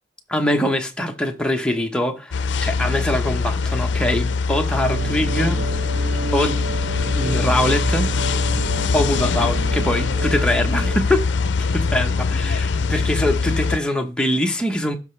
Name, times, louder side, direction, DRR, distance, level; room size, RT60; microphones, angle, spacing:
voice 1, 0.3-5.6 6.3-6.6 7.1-8.1 8.9-11.3 11.7-15.0, left 1 dB, 5° left, 0.9 m, -23 dB
sound 1, 2.3-13.8, left 4 dB, 75° left, 0.5 m, -22 dB
sound 2, 4.7-11.0, right 3 dB, 55° right, 0.5 m, -29 dB
12.5 x 4.7 x 3.2 m
head